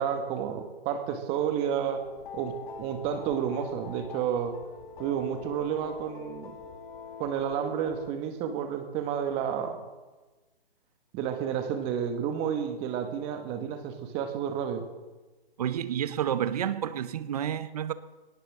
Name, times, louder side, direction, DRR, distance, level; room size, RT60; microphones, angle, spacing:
voice 1, 0.0-2.0 2.3-4.6 5.0-6.6 7.2-9.8 11.1-14.9, right 8 dB, 20° right, 1.8 m, -31 dB
sound 1, 1.9-8.1, left 6 dB, 55° left, 2.2 m, -44 dB
voice 2, 15.6-17.9, right 9 dB, 40° right, 1.0 m, -30 dB
21.0 x 18.5 x 3.8 m
hypercardioid pair, 145°, 30 cm